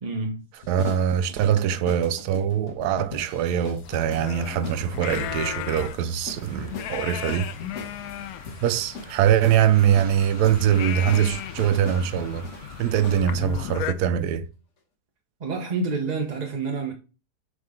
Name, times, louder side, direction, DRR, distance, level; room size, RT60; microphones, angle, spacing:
voice 1, 0.0-0.5 15.4-16.9, right 3 dB, 35° right, 0.7 m, -28 dB
sound 1, 0.6-13.3, left 4 dB, 50° left, 1.3 m, -41 dB
voice 2, 0.7-7.5 8.6-12.5 12.8-14.5, right 9 dB, 75° right, 1.1 m, -23 dB
sound 2, 3.8-13.9, left 11 dB, 70° left, 1.0 m, -36 dB
Train, 6.4-13.4, equal, 10° right, 3.1 m, -46 dB
7.5 x 3.8 x 3.7 m
omnidirectional pair, 1.8 m